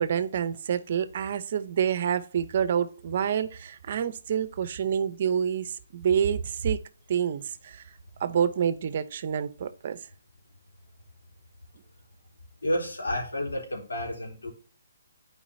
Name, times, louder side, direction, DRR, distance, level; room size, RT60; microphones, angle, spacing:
voice 1, 0.0-6.8 7.1-7.8 8.2-10.0, right 8 dB, 50° right, 0.8 m, -27 dB
voice 2, 12.6-14.5, left 1 dB, 90° left, 3.5 m, -30 dB
11.0 x 4.9 x 2.8 m
hypercardioid pair, 150°, 0 cm